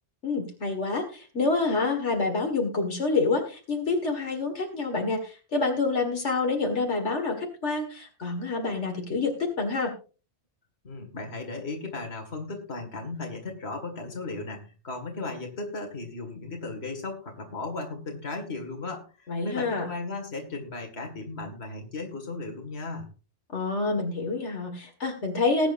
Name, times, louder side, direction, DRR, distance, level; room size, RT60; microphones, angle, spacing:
voice 1, 0.2-9.9 19.3-19.9 23.5-25.7, left 3 dB, 80° left, 3 dB, 2.3 m, -27 dB
voice 2, 10.8-23.1, left 3 dB, 65° left, 4 dB, 2.4 m, -36 dB
19.5 x 8.9 x 2.6 m, 0.34 s
omnidirectional pair, 1.2 m